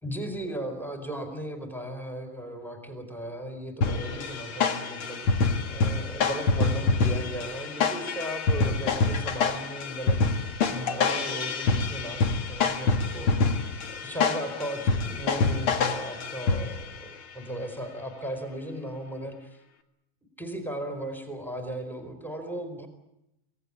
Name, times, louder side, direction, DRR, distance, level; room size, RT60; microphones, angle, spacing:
voice 1, 0.0-13.3 14.0-19.3 20.4-22.9, right 1 dB, ahead, 7 dB, 4.0 m, -36 dB
sound 1, 3.8-17.0, left 4 dB, 45° left, 2.0 m, -26 dB
26.5 x 18.5 x 10.0 m, 0.87 s
omnidirectional pair, 4.5 m